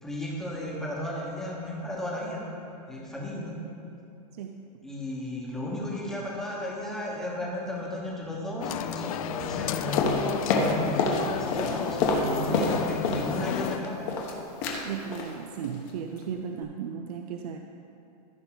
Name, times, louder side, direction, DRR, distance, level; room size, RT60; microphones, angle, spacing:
voice 1, 0.0-2.5 2.9-3.6 4.8-14.1, left 1 dB, ahead, -4 dB, 1.1 m, -34 dB
sound 1, 8.6-13.8, left 10 dB, 60° left, 0.4 m, -33 dB
sound 2, 10.0-11.2 11.5-13.3 13.6-14.3 14.6-14.8 15.1-15.3 15.6-15.9 16.2-16.3, left 3 dB, 30° left, 1.0 m, -27 dB
voice 2, 14.8-17.6, right 7 dB, 70° right, 4 dB, 0.5 m, -35 dB
14.5 x 5.5 x 3.9 m, 2.7 s
supercardioid pair, 175°, 21 cm